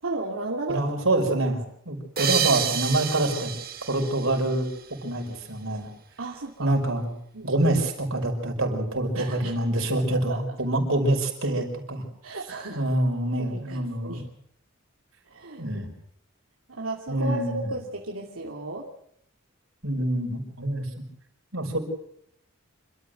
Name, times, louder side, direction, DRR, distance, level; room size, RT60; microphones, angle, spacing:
voice 1, 0.0-0.8 6.2-6.7 7.3-7.7 9.1-9.6 9.9-10.0 10.3-10.4 12.2-12.8 13.4-14.3 15.3-15.8 16.7-18.9, right 2 dB, 90° right, -2 dB, 2.7 m, -34 dB
voice 2, 0.7-3.5 3.8-4.7 5.0-5.9 6.6-7.1 7.4-12.0 12.8-14.2 15.6-15.9 17.1-17.6 19.8-20.9 21.5-21.8, right 1 dB, 65° right, 3 dB, 5.6 m, -26 dB
sound 1, 2.2-5.2, right 8 dB, 45° right, 2.1 m, -30 dB
27.5 x 13.5 x 8.0 m, 0.71 s
head